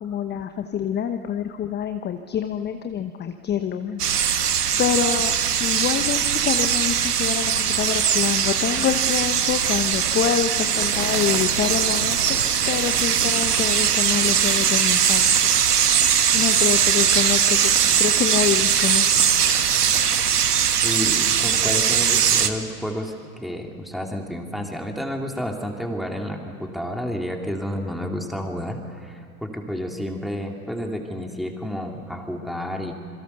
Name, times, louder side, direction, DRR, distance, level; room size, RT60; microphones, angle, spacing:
voice 1, 0.0-4.0 4.8-5.3 5.6-12.2 12.7-15.5 16.3-19.2, left 8 dB, 20° left, 7 dB, 1.0 m, -26 dB
sound 1, 4.0-22.5, right 8 dB, 80° right, 1.5 m, -20 dB
voice 2, 20.8-32.9, equal, ahead, 2 dB, 3.0 m, -30 dB
27.0 x 22.5 x 6.8 m, 2.4 s
hypercardioid pair, 95°, 46 cm